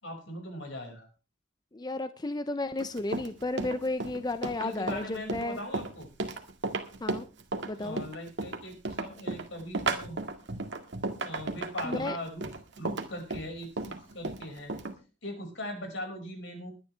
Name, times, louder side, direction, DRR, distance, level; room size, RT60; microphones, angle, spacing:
voice 1, 0.0-1.1 4.6-6.1 7.8-10.2 11.2-12.4 12.8-14.7 15.2-16.7, left 1 dB, 75° left, 3 dB, 5.6 m, -40 dB
voice 2, 1.7-5.6 7.0-7.3 7.7-8.0 11.8-12.2, left 2 dB, 20° left, 11 dB, 0.6 m, -33 dB
Run, 2.8-14.9, right 3 dB, 65° right, 1.9 m, -34 dB
21.5 x 10.5 x 3.3 m, 0.32 s
head